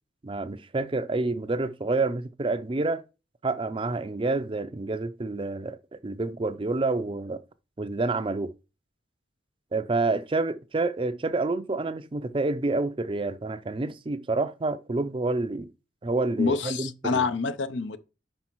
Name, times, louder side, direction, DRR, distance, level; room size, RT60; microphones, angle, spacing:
voice 1, 0.2-3.0 3.4-7.4 7.8-8.5 9.7-15.7 16.0-17.2, right 3 dB, 30° right, 0.5 m, -28 dB
voice 2, 16.4-18.0, left 4 dB, 75° left, 0.7 m, -27 dB
5.5 x 5.1 x 4.5 m
head